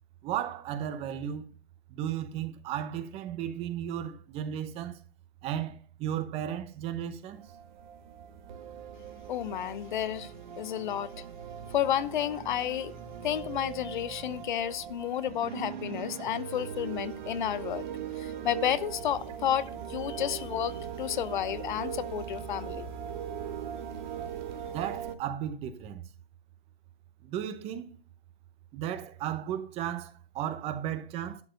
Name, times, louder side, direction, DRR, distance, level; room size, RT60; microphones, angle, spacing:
voice 1, 0.2-1.5 1.9-5.0 5.4-7.4 24.7-26.0 27.2-27.9 28.7-31.4, right 10 dB, 20° right, 0.9 m, -34 dB
sound 1, 7.3-25.2, right 8 dB, 50° right, 1.4 m, -40 dB
voice 2, 9.3-11.2 11.7-12.9 13.2-17.9 18.1-22.9, left 10 dB, 50° left, 0.8 m, -31 dB
12.0 x 4.7 x 7.8 m
hypercardioid pair, 140°, 31 cm